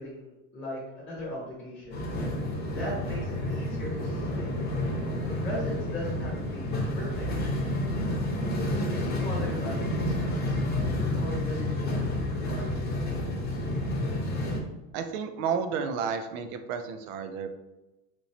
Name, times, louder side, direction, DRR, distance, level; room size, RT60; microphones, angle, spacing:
voice 1, 0.0-2.0 2.7-4.5 5.4-8.1 8.7-13.6, left 1 dB, 5° left, -6 dB, 1.2 m, -39 dB
sound 1, 1.9-14.6, left 1 dB, 20° left, 0.9 m, -30 dB
voice 2, 14.9-17.5, right 6 dB, 70° right, 7 dB, 0.6 m, -31 dB
4.3 x 3.0 x 2.8 m, 1.0 s
cardioid pair, 150°, 43 cm